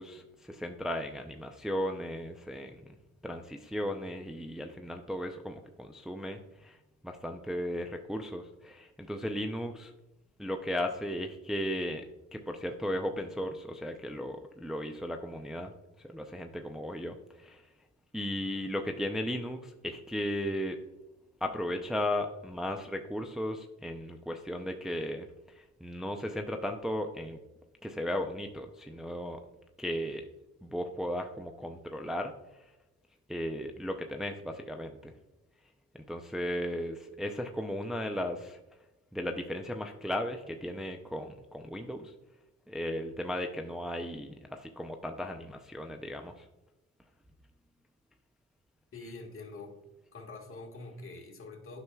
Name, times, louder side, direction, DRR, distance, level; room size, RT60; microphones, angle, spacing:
voice 1, 0.0-2.8 3.2-6.8 7.0-9.9 10.4-12.0 12.3-15.7 16.0-17.6 18.1-20.8 21.4-27.4 27.8-29.4 29.8-30.2 30.6-32.3 33.3-35.1 35.9-38.6 39.1-42.1 42.7-46.5, equal, ahead, 4 dB, 0.4 m, -36 dB
voice 2, 48.9-49.8 50.1-51.8, left 3 dB, 45° left, 1 dB, 1.6 m, -45 dB
9.5 x 6.0 x 2.3 m, 1.0 s
cardioid pair, 90°, 30 cm